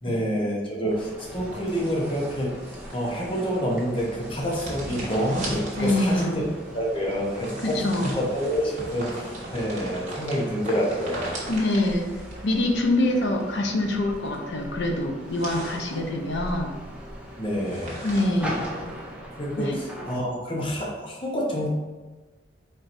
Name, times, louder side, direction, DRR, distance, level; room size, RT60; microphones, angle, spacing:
voice 1, 0.0-6.4 6.7-11.3 17.4-18.0 19.4-21.7, equal, 30° left, -3 dB, 1.0 m, -28 dB
sound 1, 0.9-20.2, equal, 5° right, 0.5 m, -40 dB
sound 2, 0.9-19.2, right 1 dB, 40° right, 1.2 m, -39 dB
voice 2, 5.8-6.4 7.8-8.1 11.5-12.1 12.4-16.7 18.0-18.6 19.6-19.8, left 1 dB, 70° left, 2 dB, 0.7 m, -25 dB
4.6 x 4.4 x 2.6 m, 1.2 s
head